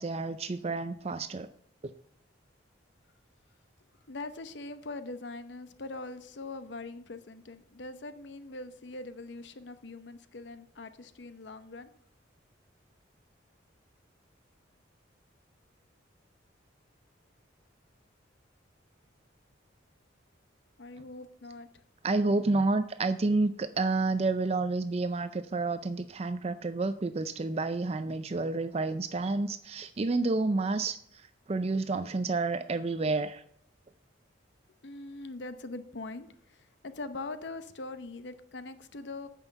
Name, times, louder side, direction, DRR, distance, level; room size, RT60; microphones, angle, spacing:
voice 1, 0.0-1.5 1.8-1.9 22.0-31.0 31.5-33.4, right 3 dB, 30° right, 11 dB, 0.4 m, -29 dB
voice 2, 4.1-11.9 20.8-21.7 34.8-39.3, left 2 dB, 65° left, 11 dB, 0.8 m, -42 dB
9.1 x 6.3 x 6.7 m, 0.69 s
head